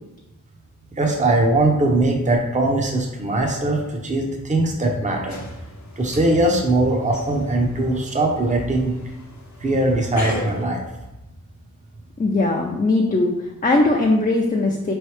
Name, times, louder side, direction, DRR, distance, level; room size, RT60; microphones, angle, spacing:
voice 1, 0.9-5.4 6.0-9.0 9.6-10.8, right 2 dB, 20° right, 1 dB, 0.6 m, -20 dB
sound 1, 5.3-10.6, left 2 dB, 60° left, 0.8 m, -37 dB
voice 2, 12.2-14.9, left 2 dB, 25° left, -1 dB, 0.4 m, -20 dB
3.8 x 3.2 x 3.2 m, 0.94 s
wide cardioid pair, 65°, 33 cm